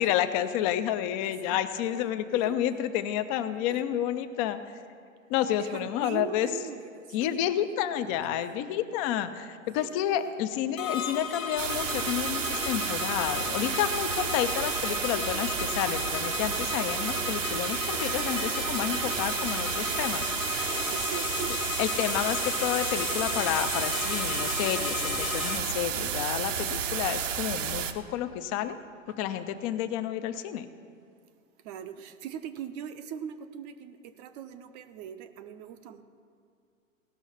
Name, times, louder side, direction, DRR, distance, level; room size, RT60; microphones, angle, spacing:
voice 1, 0.0-4.6 5.3-6.5 7.1-20.3 21.8-28.8 29.1-30.7, left 11 dB, 25° left, 11 dB, 0.5 m, -30 dB
voice 2, 1.2-2.8 3.7-3.8 5.6-8.4 9.8-10.4 14.1-14.3 20.1-21.5 29.1-29.2 31.6-36.0, right 9 dB, 30° right, 10 dB, 0.6 m, -42 dB
sound 1, 10.8-25.6, left 5 dB, 90° left, 1.5 m, -34 dB
sound 2, 11.6-27.9, right 8 dB, 65° right, 0.9 m, -32 dB
17.5 x 6.1 x 5.7 m, 2.3 s
hypercardioid pair, 125°, 40 cm